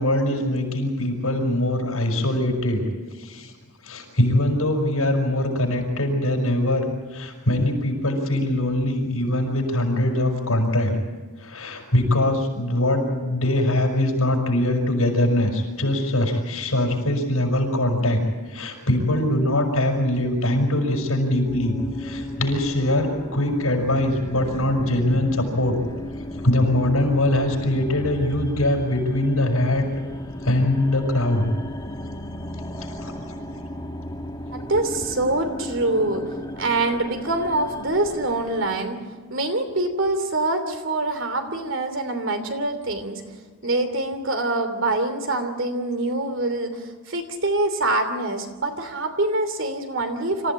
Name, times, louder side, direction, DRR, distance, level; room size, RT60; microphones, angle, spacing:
voice 1, 0.0-2.9 3.2-3.5 3.8-10.9 11.4-18.2 18.5-25.8 26.4-29.8 30.4-31.5 32.8-33.1, left 1 dB, 90° left, 2 dB, 6.0 m, -22 dB
sound 1, 21.5-38.9, left 1 dB, 20° left, 1.5 m, -35 dB
voice 2, 34.5-36.3 36.6-39.0 39.3-43.2 43.6-50.5, right 2 dB, 60° right, 8 dB, 3.0 m, -25 dB
26.0 x 15.0 x 8.8 m, 1.4 s
head